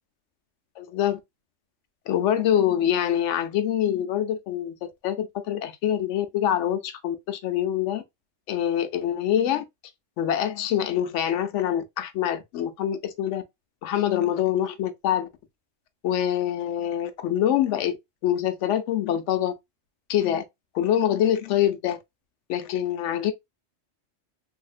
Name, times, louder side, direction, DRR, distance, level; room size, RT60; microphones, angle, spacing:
voice 1, 0.8-1.2 2.1-8.0 8.5-9.6 10.2-13.4 13.8-15.3 16.0-17.9 18.2-19.5 20.1-20.4 20.7-22.0 22.5-23.3, left 10 dB, 75° left, 0.9 m, -25 dB
3.2 x 2.7 x 2.4 m
omnidirectional pair, 1.3 m